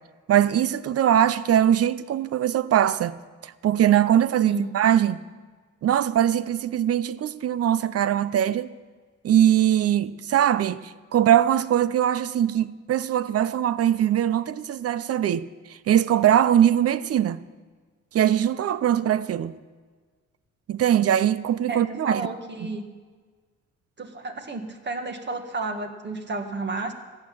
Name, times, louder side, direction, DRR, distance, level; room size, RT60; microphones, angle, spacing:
voice 1, 0.3-3.1 3.4-5.2 5.8-8.7 9.2-15.5 15.9-17.4 18.1-19.5 20.7-22.2 22.6-22.7, right 10 dB, 50° right, 0.6 m, -21 dB
voice 2, 21.7-22.9 24.0-26.9, right 3 dB, 35° right, 1.8 m, -32 dB
14.5 x 8.5 x 8.7 m
cardioid pair, 90°, 30 cm